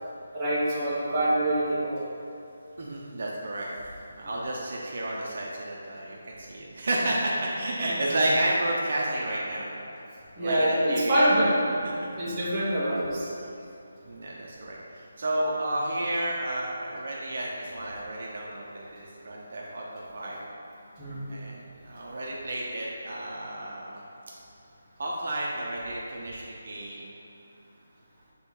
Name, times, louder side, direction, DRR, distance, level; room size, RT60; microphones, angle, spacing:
voice 1, 0.3-2.1 7.8-7.9 10.4-11.6 12.2-13.3 21.0-21.3, right 1 dB, 10° right, -11 dB, 1.1 m, -25 dB
voice 2, 2.8-3.7 4.2-10.0 10.3-11.5 11.8-12.1 14.0-20.4 21.3-24.0 25.0-27.1, right 1 dB, 50° right, -4 dB, 0.8 m, -31 dB
7.3 x 3.5 x 4.4 m, 2.7 s
hypercardioid pair, 175°, 0 cm